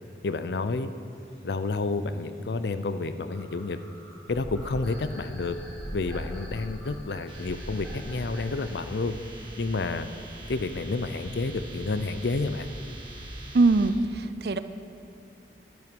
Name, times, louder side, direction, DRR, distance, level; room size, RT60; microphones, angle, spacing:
voice 1, 0.2-0.9 1.4-3.8 4.3-5.6 5.9-9.1 9.6-10.1 10.5-12.7, left 3 dB, 75° left, 11 dB, 0.5 m, -30 dB
sound 1, 1.1-8.9, right 1 dB, 5° left, 3.1 m, -50 dB
sound 2, 4.3-9.3, equal, 30° left, 1.8 m, -40 dB
sound 3, 7.3-13.9, right 1 dB, 30° right, 1.6 m, -43 dB
voice 2, 13.5-14.6, right 3 dB, 65° right, 12 dB, 0.5 m, -22 dB
11.0 x 11.0 x 5.3 m, 2.5 s
head